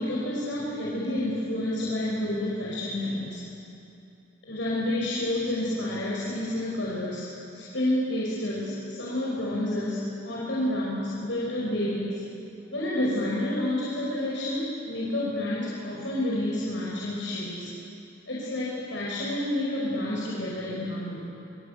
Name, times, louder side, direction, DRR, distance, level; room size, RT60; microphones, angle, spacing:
voice 1, 0.0-3.4 4.4-7.2 7.5-12.2 12.7-17.7 18.3-21.3, left 1 dB, 85° left, -6 dB, 5.8 m, -29 dB
27.0 x 25.0 x 8.4 m, 2.7 s
head